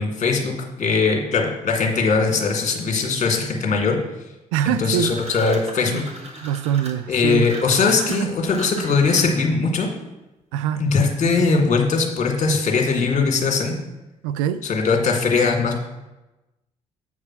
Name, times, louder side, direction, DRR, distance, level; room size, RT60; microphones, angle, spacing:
voice 1, 0.0-4.0 4.7-6.0 7.1-9.9 10.8-13.7 14.6-15.8, left 4 dB, 40° left, 2 dB, 1.9 m, -20 dB
voice 2, 4.5-5.2 5.9-6.0 6.4-7.5 8.1-8.3 10.5-10.8 14.2-14.7, right 9 dB, 70° right, 12 dB, 0.4 m, -24 dB
sound 1, 5.0-9.6, right 2 dB, 35° right, 1.8 m, -38 dB
8.0 x 4.8 x 5.9 m, 1.0 s
figure-of-eight pair, 45°, 17 cm